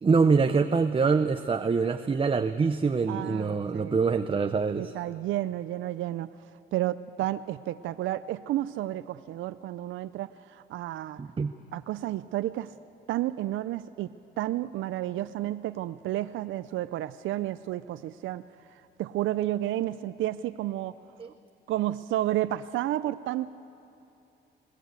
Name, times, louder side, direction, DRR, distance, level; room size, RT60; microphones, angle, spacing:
voice 1, 0.0-4.9 11.2-11.5 21.2-21.3, right 5 dB, 25° right, 8 dB, 0.7 m, -25 dB
voice 2, 3.1-4.0 4.8-6.3 6.7-11.2 11.7-12.7 13.1-18.4 18.7-20.9 21.7-23.5, right 14 dB, 80° right, 13 dB, 0.5 m, -31 dB
21.0 x 19.0 x 8.2 m, 2.9 s
cardioid pair, 90°, 20 cm